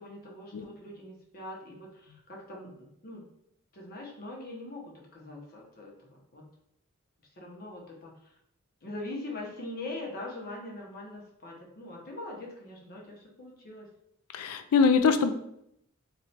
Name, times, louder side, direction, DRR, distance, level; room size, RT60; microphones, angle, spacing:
voice 1, 0.0-3.2 3.7-6.4 7.4-8.3 8.8-13.9, left 2 dB, 45° left, -2 dB, 1.1 m, -42 dB
voice 2, 14.3-15.3, left 5 dB, 80° left, 8 dB, 0.4 m, -23 dB
3.2 x 2.7 x 4.2 m, 0.74 s
head